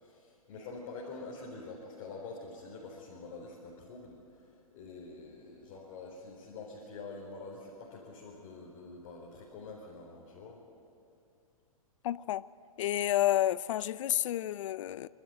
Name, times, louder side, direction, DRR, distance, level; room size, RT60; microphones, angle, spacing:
voice 1, 0.0-10.6, left 3 dB, 40° left, -3 dB, 4.3 m, -46 dB
voice 2, 12.0-12.5 12.8-15.1, left 13 dB, 60° left, 19 dB, 0.6 m, -30 dB
27.5 x 12.5 x 9.2 m, 2.6 s
hypercardioid pair, 125°, 18 cm